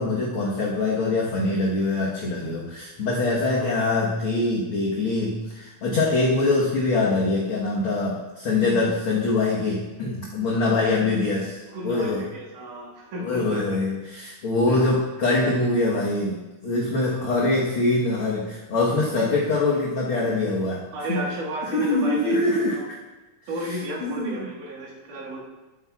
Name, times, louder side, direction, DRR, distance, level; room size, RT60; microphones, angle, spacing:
voice 1, 0.0-11.6 11.8-12.2 13.2-16.4 16.6-21.2 21.7-23.0 24.0-24.4, left 2 dB, 55° left, -4 dB, 1.7 m, -24 dB
voice 2, 11.7-13.6 14.7-14.8 17.0-17.3 20.9-22.4 22.7-22.9 23.5-25.4, right 1 dB, 80° right, -5 dB, 3.5 m, -33 dB
16.0 x 8.9 x 2.4 m, 1.1 s
omnidirectional pair, 3.6 m